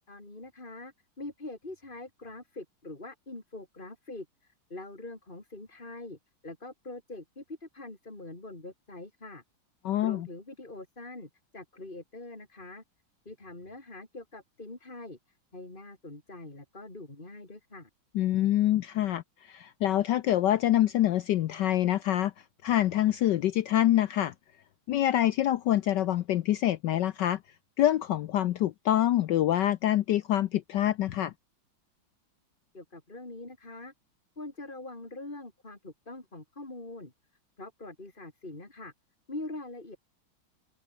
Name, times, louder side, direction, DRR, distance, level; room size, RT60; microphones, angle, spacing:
voice 1, 0.1-9.4 10.0-12.8 13.3-17.9 32.7-33.9 34.4-37.1 37.6-38.9 39.3-40.0, left 2 dB, 25° left, 3.9 m, -44 dB
voice 2, 9.8-10.3 18.1-19.2 19.5-22.3 22.6-24.3 24.9-27.4 27.8-31.3, left 12 dB, 70° left, 1.2 m, -26 dB
omnidirectional pair, 2.3 m